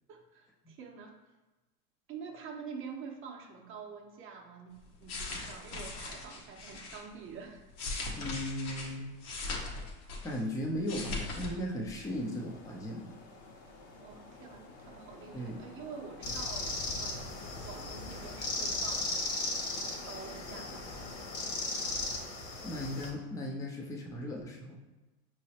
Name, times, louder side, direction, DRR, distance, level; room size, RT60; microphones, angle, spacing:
voice 1, 0.1-1.2 2.1-7.7 14.0-16.7 17.0-17.3 17.6-19.2 20.0-21.2, right 6 dB, 30° right, 1 dB, 0.7 m, -47 dB
sound 1, 4.8-7.0 7.5-10.5 10.7-11.5 11.8-12.0, left 3 dB, 70° left, 1.2 m, -39 dB
voice 2, 8.2-9.1 10.2-13.2 15.3-15.6 22.6-24.8, equal, 10° left, 0 dB, 0.5 m, -37 dB
sound 2, 12.0-22.3, left 3 dB, 35° left, 0.8 m, -50 dB
sound 3, 16.2-23.1, left 2 dB, 50° left, 1.2 m, -36 dB
5.5 x 3.2 x 2.8 m, 1.1 s
hypercardioid pair, 115°, 45 cm